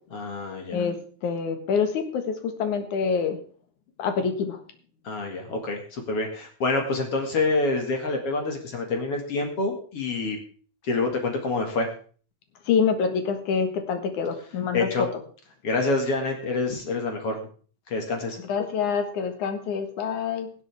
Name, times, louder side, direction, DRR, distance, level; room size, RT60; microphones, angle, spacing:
voice 1, 0.1-0.8 5.0-10.4 10.8-11.9 14.7-15.1 15.6-17.4 17.9-18.4, left 3 dB, 55° left, 3 dB, 2.7 m, -27 dB
voice 2, 1.2-3.4 4.0-4.6 12.7-14.9 18.5-20.5, left 6 dB, 80° left, 6 dB, 3.0 m, -26 dB
22.5 x 7.9 x 3.5 m, 0.41 s
omnidirectional pair, 3.4 m